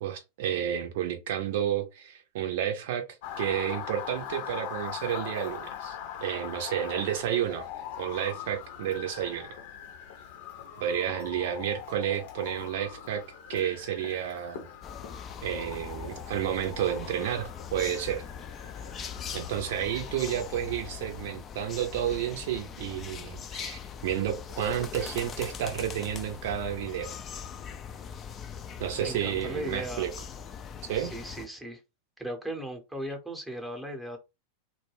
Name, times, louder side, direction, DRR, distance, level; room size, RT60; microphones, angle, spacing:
voice 1, 0.0-3.0 3.4-7.7 8.0-9.5 10.8-13.2 13.5-14.7 15.4-18.2 19.3-27.1 28.8-30.1 30.9-31.1, right 10 dB, 60° right, 0.5 m, -31 dB
Motor vehicle (road) / Siren, 3.2-21.2, left 9 dB, 60° left, 0.7 m, -42 dB
sound 1, 14.8-31.5, left 7 dB, 30° left, 0.4 m, -41 dB
voice 2, 29.0-30.1 31.0-31.8 32.2-34.2, right 1 dB, 5° right, 0.8 m, -37 dB
2.3 x 2.1 x 3.2 m
figure-of-eight pair, 90°, 0 cm